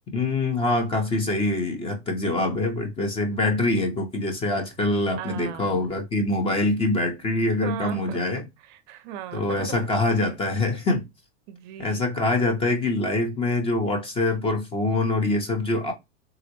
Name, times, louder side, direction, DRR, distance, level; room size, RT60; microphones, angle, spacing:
voice 1, 0.1-8.4 9.3-11.0 11.8-15.9, left 2 dB, 15° left, 0.6 m, -24 dB
voice 2, 5.2-5.9 7.6-8.2 8.6-9.7 11.5-12.1, right 10 dB, 45° right, 0.5 m, -37 dB
3.7 x 2.1 x 2.8 m
supercardioid pair, 135°, 34 cm